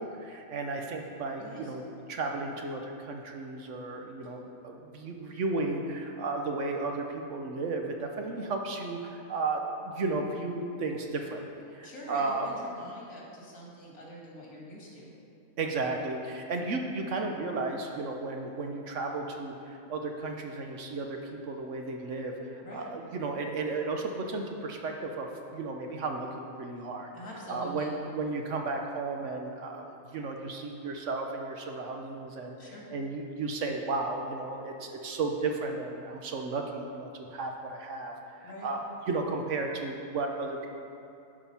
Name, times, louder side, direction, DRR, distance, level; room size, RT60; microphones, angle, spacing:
voice 1, 0.0-11.4 11.7-12.5 15.6-25.3 25.5-27.1 27.5-40.7, right 3 dB, 60° right, 2 dB, 1.0 m, -34 dB
voice 2, 1.4-1.7 11.8-15.1 22.6-22.9 27.1-27.9 32.6-32.9 38.4-38.7, left 1 dB, 80° left, -4 dB, 2.3 m, -45 dB
10.5 x 5.0 x 5.6 m, 2.5 s
omnidirectional pair, 1.5 m